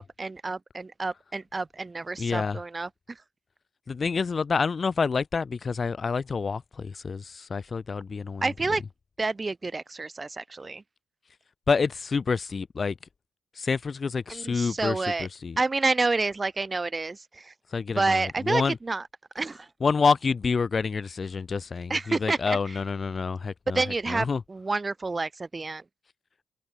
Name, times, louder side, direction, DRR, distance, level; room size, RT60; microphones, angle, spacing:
voice 1, 0.0-3.2 8.4-8.8 9.2-10.8 14.3-15.3 15.6-17.5 17.9-19.1 19.3-19.7 21.9-22.8 23.7-25.8, right 3 dB, 35° right, 3.0 m, -29 dB
voice 2, 2.2-2.6 3.9-8.4 11.7-13.0 13.5-15.6 17.7-18.8 19.8-23.8 24.1-24.4, left 5 dB, 45° left, 3.4 m, -28 dB
hypercardioid pair, 45°, 0 cm